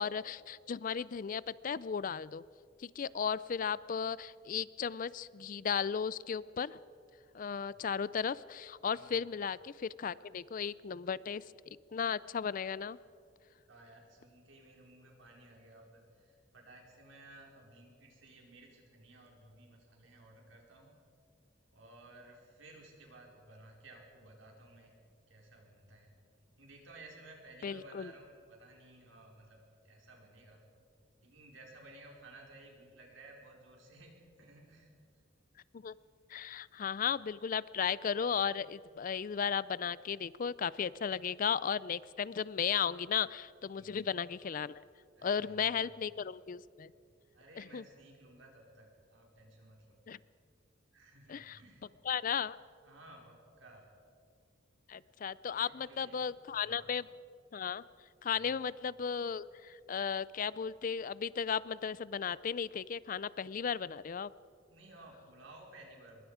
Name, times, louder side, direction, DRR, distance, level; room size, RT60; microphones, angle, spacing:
voice 1, 0.0-2.4 2.8-6.8 7.3-13.0 27.6-28.1 35.7-36.0 36.3-44.8 45.2-46.9 47.6-47.8 50.1-50.2 51.3-51.6 52.0-52.6 54.9-57.0 57.5-57.8 58.2-64.3, left 7 dB, 45° left, 19 dB, 0.4 m, -35 dB
voice 2, 13.7-21.0 21.7-25.0 25.3-26.1 26.6-30.6 31.2-35.2 43.7-44.0 45.2-45.9 47.3-50.0 50.9-51.9 52.8-53.9 54.9-55.1 55.6-56.9 58.3-58.7 64.7-66.2, right 2 dB, 85° right, 0 dB, 4.8 m, -56 dB
24.5 x 21.5 x 5.0 m, 2.3 s
head